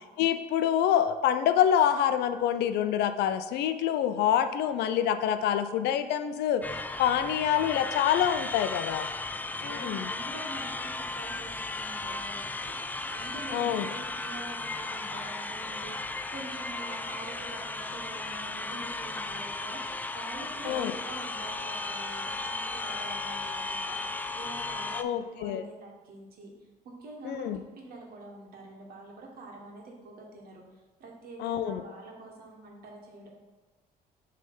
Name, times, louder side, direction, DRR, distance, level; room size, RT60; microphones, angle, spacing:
voice 1, 0.2-6.6 7.0-9.1 9.6-10.1 13.5-13.9 20.6-20.9 24.9-25.6 27.2-27.6 31.4-31.8, left 9 dB, 80° left, 10 dB, 0.5 m, -26 dB
sound 1, 6.6-25.0, left 3 dB, 10° left, 0.3 m, -35 dB
voice 2, 9.6-12.4 12.8-26.5 27.0-30.6 31.0-33.3, right 2 dB, 65° right, 0 dB, 1.5 m, -45 dB
6.6 x 3.4 x 5.4 m, 1.3 s
cardioid pair, 110°, 17 cm